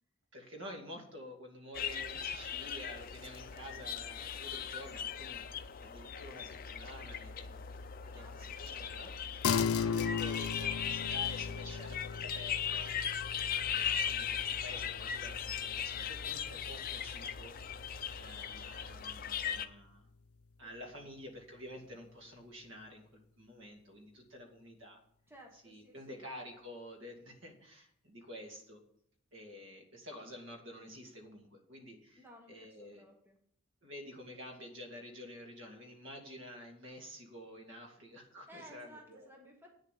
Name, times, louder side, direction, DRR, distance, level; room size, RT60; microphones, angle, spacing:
voice 1, 0.3-5.4 5.8-9.5 9.8-12.9 13.4-17.8 18.2-20.0 20.6-25.0 25.5-28.8 29.3-33.0 33.8-39.3, equal, 60° right, 2 dB, 2.4 m, -50 dB
sound 1, 1.7-19.7, left 8 dB, 40° left, 0.6 m, -38 dB
voice 2, 8.1-8.6 20.6-21.1 25.3-26.3 32.2-33.4 38.5-39.7, equal, 10° right, 1 dB, 1.3 m, -57 dB
sound 2, 9.4-19.2, left 6 dB, 85° left, 0.5 m, -38 dB
9.0 x 6.7 x 8.4 m, 0.68 s
head